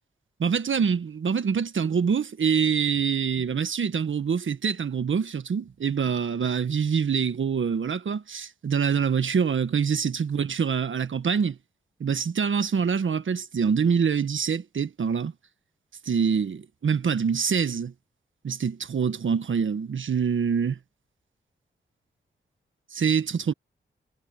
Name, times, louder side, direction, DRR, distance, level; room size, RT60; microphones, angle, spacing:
voice 1, 0.4-11.6 12.0-15.3 16.0-17.9 18.4-20.7 22.9-23.5, right 6 dB, 70° right, 1.5 m, -25 dB
cardioid pair, 45°, 21 cm